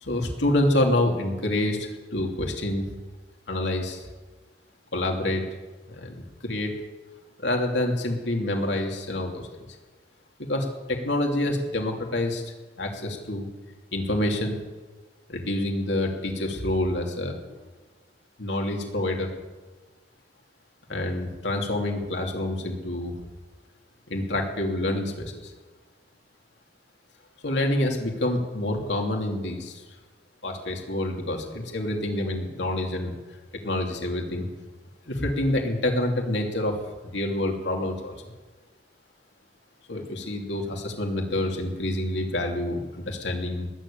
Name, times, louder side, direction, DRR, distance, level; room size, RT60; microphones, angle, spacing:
voice 1, 0.0-2.8 3.5-4.0 4.9-5.4 5.9-6.8 7.4-9.5 10.5-12.4 12.8-13.5 13.9-14.6 15.3-17.6 18.4-19.3 20.9-23.1 24.1-25.3 27.4-29.8 30.4-33.1 33.6-34.5 35.1-36.8 37.0-38.1 39.9-43.7, left 1 dB, 80° left, 2 dB, 2.8 m, -27 dB
20.0 x 7.4 x 8.7 m, 1.3 s
head